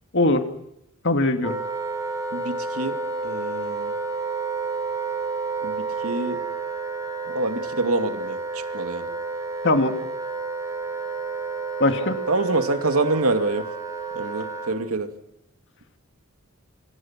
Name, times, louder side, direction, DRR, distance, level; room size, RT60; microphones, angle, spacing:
voice 1, 0.1-0.5 1.0-1.6 9.6-10.0 11.8-12.2, left 2 dB, 55° left, 7 dB, 2.5 m, -20 dB
Wind instrument woodwind instrument, 1.4-14.8, right 4 dB, 15° right, 4.5 m, -30 dB
voice 2, 2.3-3.0 3.2-3.9 5.6-6.4 7.3-9.1 12.3-13.7 14.1-15.1, right 2 dB, 80° right, 7 dB, 2.5 m, -26 dB
27.0 x 26.0 x 6.0 m, 0.81 s
head